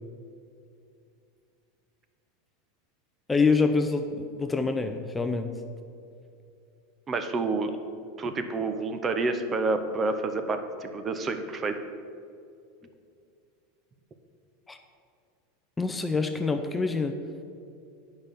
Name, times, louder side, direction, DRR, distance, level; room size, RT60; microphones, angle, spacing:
voice 1, 3.3-5.5 14.7-14.8 15.8-17.1, left 4 dB, 15° left, 6 dB, 0.5 m, -26 dB
voice 2, 7.1-7.7 8.2-11.8, right 3 dB, 25° right, 8 dB, 0.8 m, -29 dB
8.7 x 5.4 x 6.8 m, 2.5 s
hypercardioid pair, 110°, 0 cm